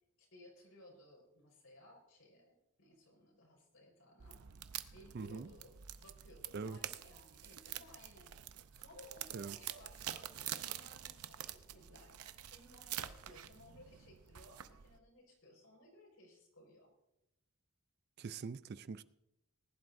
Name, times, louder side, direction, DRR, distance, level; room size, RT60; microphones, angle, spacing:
voice 1, 0.2-4.4 4.9-5.7 6.0-8.3 8.8-12.1 12.5-16.9, left 1 dB, 75° left, 4.8 m, -60 dB
sound 1, 4.2-15.0, right 11 dB, 90° right, 0.6 m, -47 dB
voice 2, 5.1-5.5 6.5-6.8 9.3-9.6 18.2-19.0, right 5 dB, 45° right, 0.4 m, -43 dB
20.0 x 11.0 x 2.6 m
head